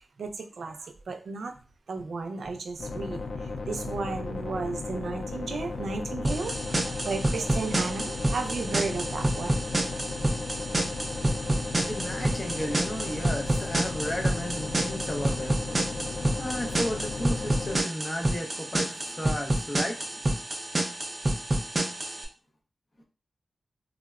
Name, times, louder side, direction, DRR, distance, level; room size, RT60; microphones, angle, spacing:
voice 1, 0.2-1.5 1.9-9.6, right 3 dB, 85° right, 0.4 m, -34 dB
sound 1, 2.8-17.8, left 3 dB, 90° left, 0.3 m, -35 dB
sound 2, 6.2-22.2, right 1 dB, 30° right, 0.5 m, -29 dB
voice 2, 11.0-20.1, left 1 dB, 25° left, 0.6 m, -35 dB
3.4 x 2.0 x 2.3 m
wide cardioid pair, 115°, 0 cm